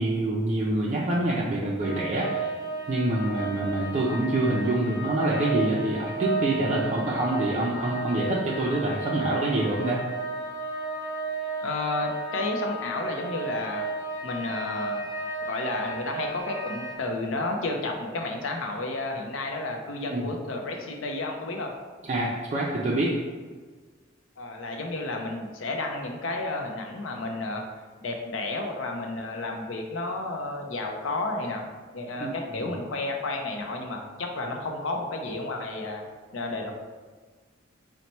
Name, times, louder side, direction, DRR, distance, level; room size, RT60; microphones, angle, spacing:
voice 1, 0.0-2.5 2.9-10.0 20.1-20.3 22.1-23.2 32.2-32.7, right 1 dB, 35° right, -5 dB, 0.4 m, -26 dB
sound 1, 1.8-16.9, right 3 dB, 5° left, 0.7 m, -33 dB
voice 2, 11.6-13.9 14.2-15.1 15.5-21.7 24.4-27.6 28.0-31.7 31.9-36.0 36.3-36.7, left 2 dB, 70° left, 2 dB, 0.6 m, -31 dB
4.1 x 2.1 x 4.3 m, 1.5 s
head